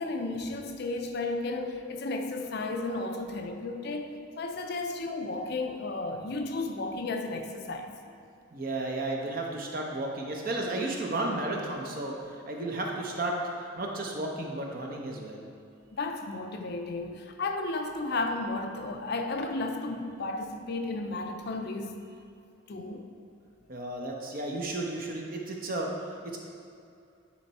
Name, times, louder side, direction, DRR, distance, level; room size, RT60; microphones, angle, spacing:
voice 1, 0.0-7.9 15.9-22.0 22.7-23.1, left 2 dB, 50° left, 5 dB, 0.5 m, -33 dB
voice 2, 8.5-15.5 23.7-26.4, right 2 dB, 40° right, 0 dB, 0.8 m, -33 dB
10.0 x 3.3 x 4.1 m, 2.5 s
head